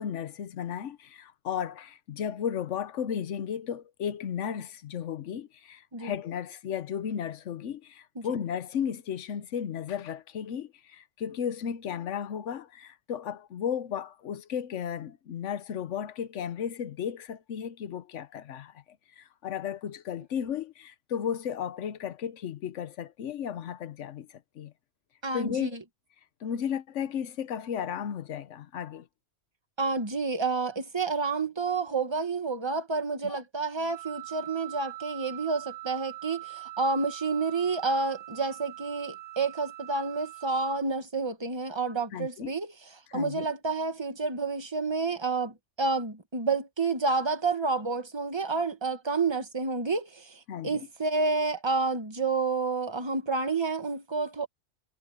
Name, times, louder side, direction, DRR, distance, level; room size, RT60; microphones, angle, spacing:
voice 1, 0.0-18.8 19.2-24.7 25.3-25.8 26.4-29.1 33.2-33.4 42.1-42.5 43.1-43.5 50.5-50.9, left 8 dB, 80° left, 1.2 m, -34 dB
voice 2, 25.2-25.8 29.8-42.7 43.1-54.5, right 4 dB, 25° right, 1.6 m, -29 dB
Wind instrument woodwind instrument, 33.9-40.8, right 18 dB, 80° right, 7.4 m, -43 dB
omnidirectional pair, 1.2 m